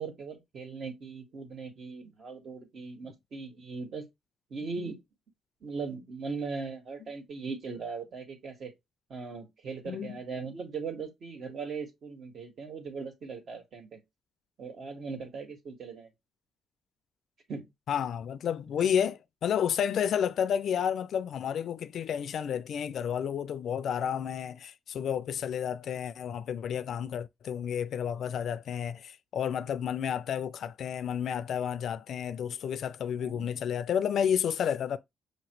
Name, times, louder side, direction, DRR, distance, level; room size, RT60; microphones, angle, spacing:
voice 1, 0.0-4.1 4.5-5.0 5.6-8.7 9.1-14.0 14.6-16.1 17.5-17.7 18.8-18.9 33.2-33.5, right 4 dB, 55° right, 1.7 m, -39 dB
voice 2, 9.9-10.2 17.9-35.0, left 8 dB, 65° left, 0.4 m, -31 dB
5.6 x 2.9 x 3.1 m
cardioid pair, 90°, 0 cm